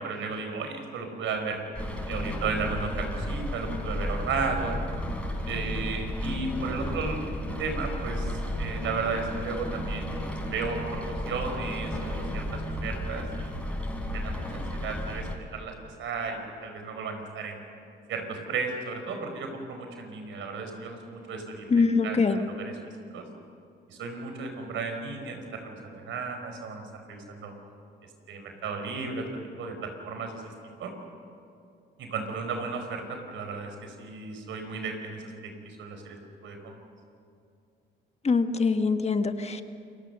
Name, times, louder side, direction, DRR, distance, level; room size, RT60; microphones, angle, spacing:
voice 1, 0.0-1.6 2.1-4.8 5.4-7.3 7.6-13.7 14.1-15.7 16.0-17.6 18.1-22.8 23.1-23.2 23.9-27.5 28.3-29.3 29.6-30.4 30.8-30.9 32.0-36.7, right 4 dB, 80° right, 5 dB, 4.7 m, -34 dB
Rain, 1.7-15.4, left 1 dB, 5° left, 5.8 m, -33 dB
voice 2, 21.7-22.4 38.2-39.6, left 4 dB, 35° left, 8 dB, 1.4 m, -23 dB
28.0 x 22.0 x 6.9 m, 2.5 s
cardioid pair, 90°, 20 cm